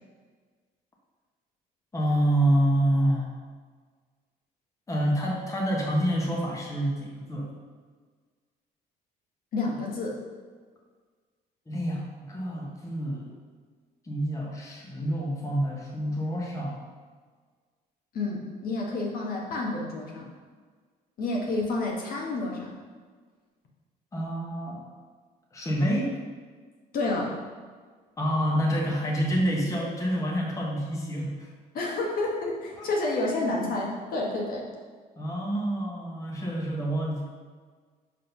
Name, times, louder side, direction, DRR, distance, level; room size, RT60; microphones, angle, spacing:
voice 1, 1.9-3.3 4.9-7.5 11.7-13.3 14.0-16.8 24.1-24.8 25.5-26.1 28.2-31.5 32.8-32.9 35.2-37.3, right 1 dB, 20° left, -2 dB, 1.1 m, -27 dB
voice 2, 9.5-10.2 18.1-20.3 21.2-22.7 26.9-27.4 31.7-34.7, left 2 dB, 60° left, -1 dB, 1.4 m, -29 dB
5.4 x 3.7 x 5.8 m, 1.5 s
cardioid pair, 110°, 17 cm